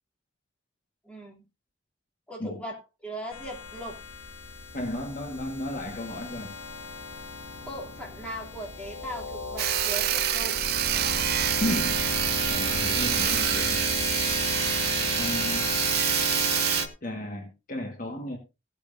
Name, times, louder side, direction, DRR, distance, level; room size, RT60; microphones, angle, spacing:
voice 1, 1.0-1.4 2.3-2.8 3.0-4.0 7.6-10.6, right 1 dB, 5° left, 2.9 m, -38 dB
sound 1, 3.3-16.9, left 3 dB, 70° left, 2.0 m, -34 dB
voice 2, 4.7-6.5 11.6-12.0 12.5-13.8 15.2-15.7 17.0-18.4, left 1 dB, 40° left, 1.6 m, -33 dB
Sawing, 9.6-16.9, right 12 dB, 50° right, 0.7 m, -27 dB
16.0 x 8.6 x 2.7 m
head